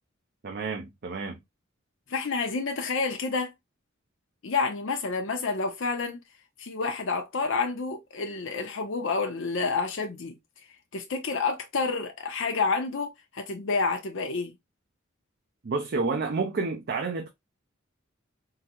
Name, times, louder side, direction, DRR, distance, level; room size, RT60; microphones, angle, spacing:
voice 1, 0.4-1.4 15.6-17.3, right 4 dB, 55° right, 0.5 m, -30 dB
voice 2, 2.1-3.5 4.4-6.2 6.6-10.4 10.9-14.5, left 4 dB, 70° left, 0.6 m, -29 dB
3.8 x 2.1 x 2.8 m
head